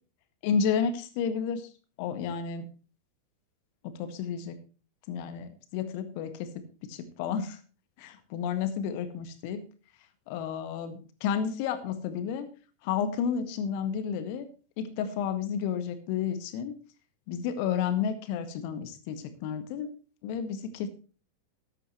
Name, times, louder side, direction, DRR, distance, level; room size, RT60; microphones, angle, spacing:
voice 1, 0.4-1.7 2.0-2.7 3.8-4.6 5.1-7.6 8.0-9.7 10.3-12.5 12.8-14.5 14.8-16.7 17.3-19.9 20.2-20.9, left 7 dB, 45° left, 11 dB, 1.7 m, -31 dB
13.5 x 11.0 x 3.1 m, 0.35 s
figure-of-eight pair, 90°, 0 cm